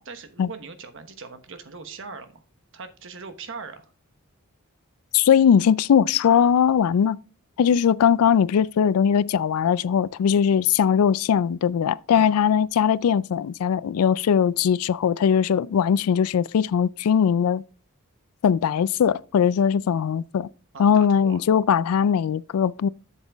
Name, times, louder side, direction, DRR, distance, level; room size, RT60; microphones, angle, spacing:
voice 1, 0.0-2.4 2.7-3.9 12.1-12.3 20.7-21.4, right 4 dB, 60° right, 1.1 m, -40 dB
voice 2, 5.1-7.2 7.6-17.6 18.4-20.5 20.8-22.9, left 7 dB, 85° left, 0.3 m, -20 dB
7.7 x 7.3 x 3.5 m
head